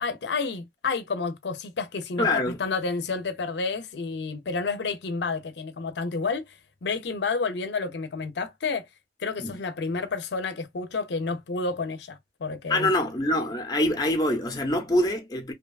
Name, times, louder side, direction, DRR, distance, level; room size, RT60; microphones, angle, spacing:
voice 1, 0.0-8.9 9.2-12.9, left 4 dB, 75° left, 0.5 m, -30 dB
voice 2, 2.2-2.6 9.4-9.5 12.7-15.5, left 1 dB, 20° left, 0.5 m, -25 dB
2.8 x 2.2 x 2.3 m
head